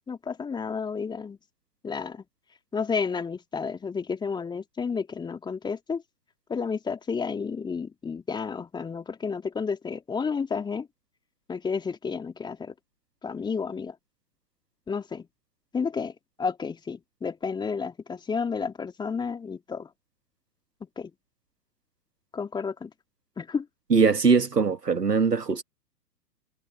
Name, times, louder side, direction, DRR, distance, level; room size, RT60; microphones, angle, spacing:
voice 1, 0.1-1.4 1.8-2.2 2.7-6.0 6.5-10.9 11.5-12.7 13.2-13.9 14.9-15.3 15.7-16.1 16.4-19.9 21.0-21.1 22.3-22.9 23.4-23.7, left 5 dB, 10° left, 2.3 m, -31 dB
voice 2, 23.9-25.6, right 5 dB, 80° right, 1.8 m, -21 dB
figure-of-eight pair, 110°, 48 cm